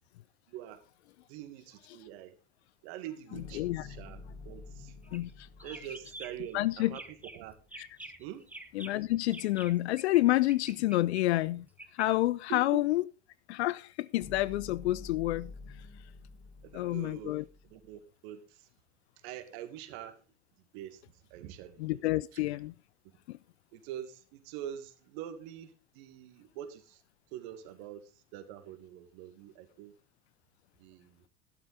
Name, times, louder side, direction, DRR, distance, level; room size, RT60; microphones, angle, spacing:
voice 1, 0.5-0.8 1.3-2.4 2.8-5.0 5.6-7.6 8.2-8.4 12.5-12.8 16.6-18.7 19.2-20.2 20.7-21.0 21.3-22.0 22.3-22.4 23.7-27.0 27.3-30.0 30.8-31.2, right 11 dB, 60° right, 2.1 m, -45 dB
sound 1, 3.3-7.6 14.2-18.0, left 3 dB, 40° left, 5.0 m, -49 dB
voice 2, 3.5-3.9 5.1-5.5 6.5-7.0 7.8-7.9 8.7-11.7 11.9-13.0 13.5-15.5 16.7-17.4 21.8-22.7 23.3-23.4, left 17 dB, 65° left, 0.5 m, -29 dB
sound 2, 5.0-5.3 5.6-6.5 6.9-7.4 7.7-10.2 10.5-12.1, right 1 dB, 5° right, 1.3 m, -47 dB
12.0 x 12.0 x 4.0 m
figure-of-eight pair, 75°, 36 cm